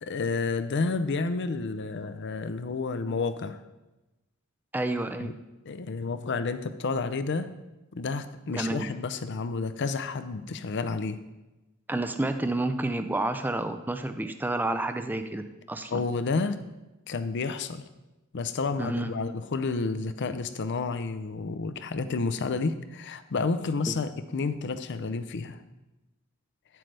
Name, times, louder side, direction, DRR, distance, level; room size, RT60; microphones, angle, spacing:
voice 1, 0.0-3.6 5.2-5.3 5.7-7.5 7.9-11.2 15.9-16.6 17.1-17.8 18.3-25.6, left 4 dB, 55° left, 11 dB, 0.5 m, -30 dB
voice 2, 4.7-5.3 8.5-8.9 11.9-16.0 18.8-19.1, right 2 dB, 10° right, 8 dB, 0.4 m, -30 dB
9.0 x 7.6 x 3.3 m, 1.0 s
head